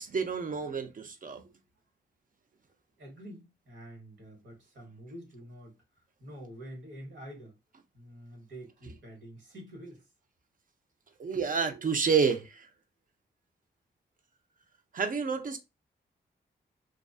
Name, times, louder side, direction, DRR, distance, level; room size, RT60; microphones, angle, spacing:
voice 1, 0.0-1.4 11.2-12.7 14.9-15.6, right 5 dB, 45° right, 0.6 m, -29 dB
voice 2, 3.0-5.8 6.2-7.6 7.9-10.0, equal, 85° right, 1.3 m, -47 dB
2.5 x 2.4 x 2.3 m
cardioid pair, 65°, 19 cm